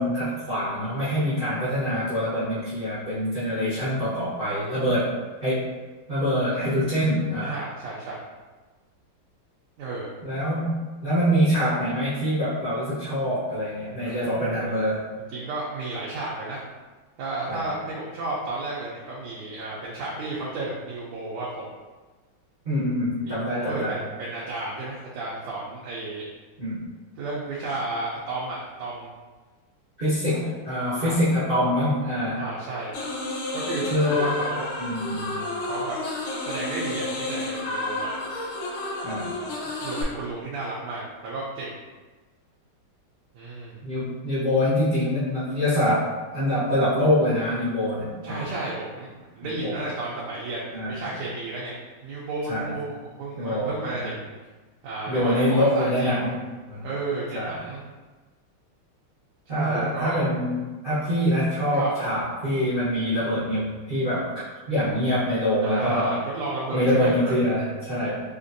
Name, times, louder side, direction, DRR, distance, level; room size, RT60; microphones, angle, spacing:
voice 1, 0.0-5.1 5.4-5.7 6.1-7.5 10.2-15.0 17.5-17.6 22.6-24.0 26.6-26.8 30.0-32.4 33.9-34.3 34.8-35.4 39.0-39.3 43.8-48.5 49.4-49.8 50.7-51.0 52.5-52.7 53.4-54.1 55.1-56.4 56.7-56.9 57.3-57.6 59.5-60.6 60.8-64.3 64.7-66.1 66.7-68.2, equal, 40° right, -12 dB, 0.8 m, -25 dB
voice 2, 7.4-8.2 9.8-10.1 14.0-14.7 15.3-16.6 17.2-21.6 23.2-26.2 27.2-29.1 30.3-30.6 30.9-31.2 32.4-32.9 33.5-34.7 35.6-36.0 36.4-38.1 39.8-41.8 43.3-43.8 48.2-51.7 52.0-54.3 54.8-56.2 56.8-57.8 59.5-60.2 61.7-62.2 65.6-67.1, right 2 dB, 80° right, -6 dB, 1.5 m, -32 dB
sound 1, 32.9-40.0, left 2 dB, 70° left, 1.5 m, -31 dB
4.5 x 2.5 x 2.6 m, 1.3 s
omnidirectional pair, 2.4 m